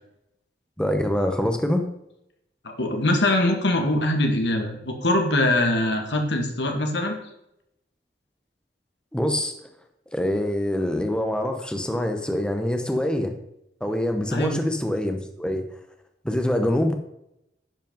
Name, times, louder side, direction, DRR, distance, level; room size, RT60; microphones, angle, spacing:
voice 1, 0.8-1.9 9.1-9.5 10.1-13.3 13.8-15.6 16.2-16.9, left 1 dB, 5° left, 5 dB, 0.8 m, -25 dB
voice 2, 2.6-7.2 14.3-14.6, left 1 dB, 90° left, 4 dB, 1.7 m, -23 dB
10.5 x 5.2 x 5.3 m, 0.82 s
head